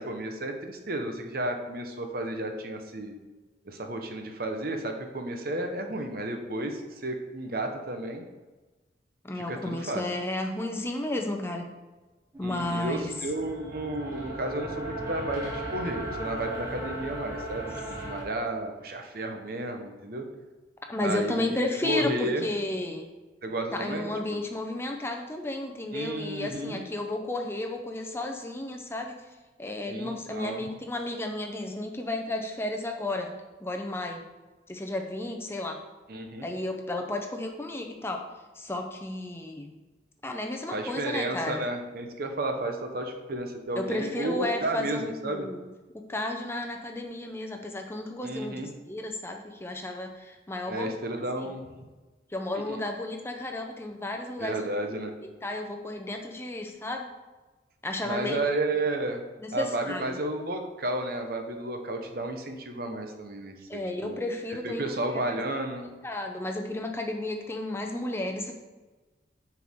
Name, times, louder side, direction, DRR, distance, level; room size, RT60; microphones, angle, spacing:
voice 1, 0.0-3.1 3.7-8.2 9.3-10.0 12.4-20.2 21.0-22.5 23.4-24.4 25.9-26.8 29.9-30.6 36.1-36.5 40.7-45.5 48.2-48.7 50.7-51.9 52.7-52.8 54.4-55.1 58.0-59.2 59.5-64.2 64.6-65.9, right 1 dB, 55° right, 5 dB, 0.8 m, -32 dB
voice 2, 9.2-11.7 12.4-13.1 20.9-23.1 23.7-29.1 29.6-34.2 34.7-35.8 36.4-38.2 38.6-39.7 40.2-41.6 43.8-45.6 45.9-51.0 51.4-51.5 52.3-54.6 55.4-57.1 57.8-58.4 59.4-60.2 63.7-65.4 66.0-68.5, left 1 dB, 15° left, 3 dB, 0.6 m, -33 dB
sound 1, 12.3-18.2, right 1 dB, 20° right, 1.9 m, -37 dB
9.8 x 4.6 x 3.6 m, 1.2 s
head